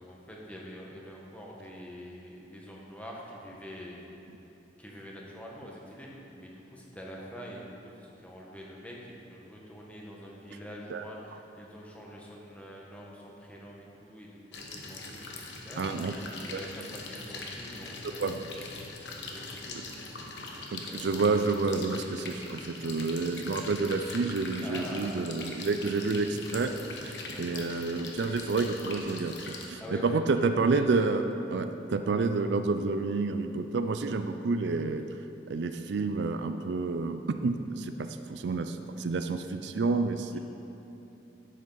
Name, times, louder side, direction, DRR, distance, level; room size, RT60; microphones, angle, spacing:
voice 1, 0.0-4.1 4.8-9.0 9.3-18.2 18.5-18.7 19.1-20.1 20.5-21.2 22.1-22.3 24.6-25.1 27.3-27.6 29.7-30.8 40.3-40.4, equal, 10° left, -3 dB, 1.2 m, -45 dB
sound 1, 14.5-29.7, left 3 dB, 75° left, 1.1 m, -42 dB
voice 2, 15.8-16.1 16.5-16.6 18.2-18.5 20.7-26.7 27.0-27.1 27.4-31.2 31.5-35.0 35.5-40.4, right 3 dB, 75° right, 8 dB, 0.4 m, -29 dB
11.0 x 7.7 x 4.0 m, 3.0 s
head